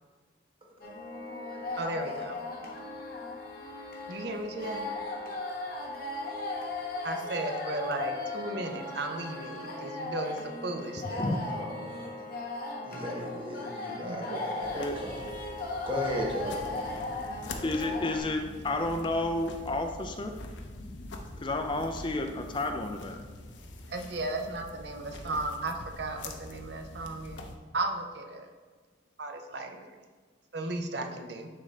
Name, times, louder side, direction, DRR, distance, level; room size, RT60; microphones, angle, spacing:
sound 1, 0.8-18.2, left 2 dB, 50° left, 1.1 m, -37 dB
voice 1, 1.8-2.4 4.1-4.8 7.0-11.2 14.0-14.2 23.9-28.5 29.2-29.8 30.5-31.5, right 2 dB, 55° right, 5 dB, 0.6 m, -35 dB
voice 2, 11.2-12.2 12.8-15.2 15.9-16.6, equal, 25° right, -2 dB, 1.2 m, -36 dB
sound 2, 14.6-27.6, left 2 dB, 70° left, 0.6 m, -44 dB
voice 3, 17.6-20.4 21.4-23.2, left 2 dB, 25° left, 5 dB, 0.4 m, -31 dB
9.9 x 3.8 x 3.3 m, 1.4 s
head